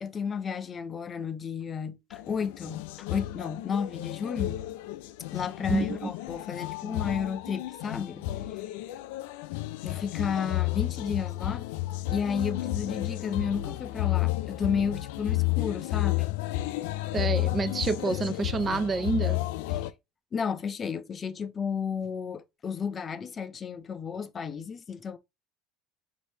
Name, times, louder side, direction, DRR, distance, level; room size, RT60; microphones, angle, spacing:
voice 1, 0.0-4.6 5.3-8.2 8.5-8.9 9.8-11.7 12.1-16.4 19.7-19.9 20.3-25.2, left 6 dB, 30° left, 0.6 m, -33 dB
sound 1, 2.1-19.9, left 16 dB, 80° left, 0.3 m, -32 dB
voice 2, 5.7-6.1 17.1-19.4, right 3 dB, 30° right, 0.5 m, -28 dB
5.1 x 2.7 x 3.3 m
supercardioid pair, 105°, 0 cm